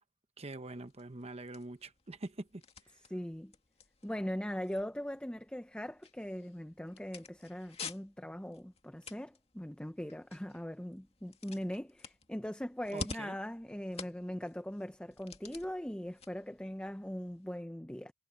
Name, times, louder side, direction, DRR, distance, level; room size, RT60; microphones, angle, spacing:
voice 1, 0.4-3.0 12.9-13.4, right 2 dB, 30° right, 1.0 m, -45 dB
sound 1, 0.7-17.6, left 4 dB, 30° left, 2.3 m, -51 dB
voice 2, 3.1-3.5 4.0-18.1, equal, 5° left, 0.6 m, -40 dB
head